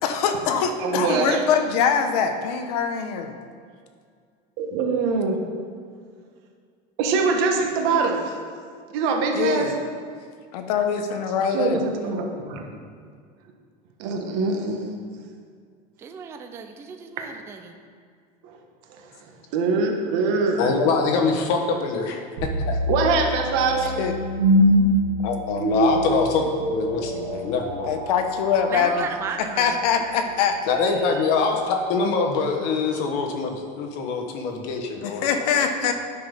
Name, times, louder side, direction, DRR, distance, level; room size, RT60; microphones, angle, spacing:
voice 1, 0.0-3.3 9.3-9.7 10.5-11.8 23.9-24.2 27.9-29.1 29.4-30.6 35.0-35.9, left 7 dB, 80° left, 6 dB, 1.0 m, -23 dB
voice 2, 0.8-1.4 4.6-5.4 7.0-8.3 8.9-9.7 11.5-12.6 14.0-14.9 18.4-18.6 18.9-19.1 19.5-20.7 22.9-23.9, right 4 dB, 50° right, 2 dB, 1.4 m, -23 dB
voice 3, 16.0-17.7 28.7-29.8, right 6 dB, 15° right, 6 dB, 0.4 m, -34 dB
voice 4, 20.6-22.2 22.7-22.8 25.2-28.0 30.7-35.5, left 4 dB, 50° left, 3 dB, 1.3 m, -24 dB
sound 1, 22.4-31.5, equal, 75° right, 2.2 m, -25 dB
9.5 x 6.0 x 5.4 m, 2.1 s
cardioid pair, 170°, 20 cm